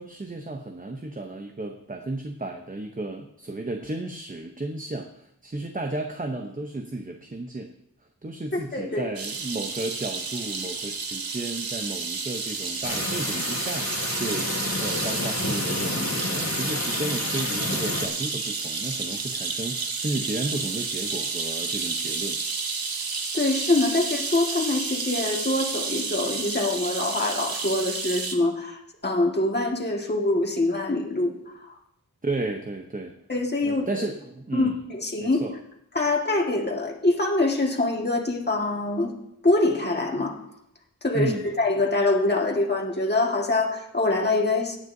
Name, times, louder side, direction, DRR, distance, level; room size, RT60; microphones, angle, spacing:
voice 1, 0.0-7.7 8.2-22.4 32.2-33.1 33.6-34.8 35.2-35.6 41.1-41.5, right 2 dB, 25° right, 4 dB, 0.8 m, -33 dB
voice 2, 8.7-9.1 23.3-31.7 33.3-34.0 34.5-35.4 35.9-39.1 39.4-40.4 41.0-44.8, left 2 dB, 30° left, 0 dB, 1.8 m, -24 dB
sound 1, 9.2-28.4, right 4 dB, 85° right, 1.1 m, -31 dB
sound 2, 12.8-18.1, left 2 dB, 50° left, 2.2 m, -30 dB
17.0 x 9.4 x 2.7 m, 0.79 s
wide cardioid pair, 65°, 35 cm